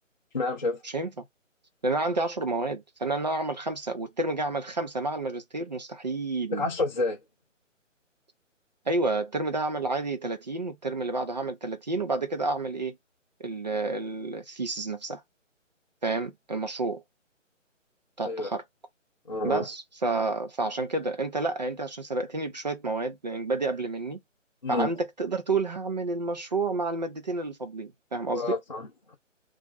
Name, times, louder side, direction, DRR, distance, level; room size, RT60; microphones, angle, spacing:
voice 1, 0.3-0.8 6.5-7.2 18.3-18.5 19.3-19.7 24.6-24.9 28.3-29.2, left 2 dB, 35° left, 0.5 m, -29 dB
voice 2, 1.8-6.7 8.9-13.0 13.4-15.2 16.0-17.0 18.2-18.6 19.4-24.2 24.7-28.6, right 3 dB, 35° right, 0.5 m, -30 dB
2.4 x 2.2 x 3.8 m
figure-of-eight pair, 150°, 39 cm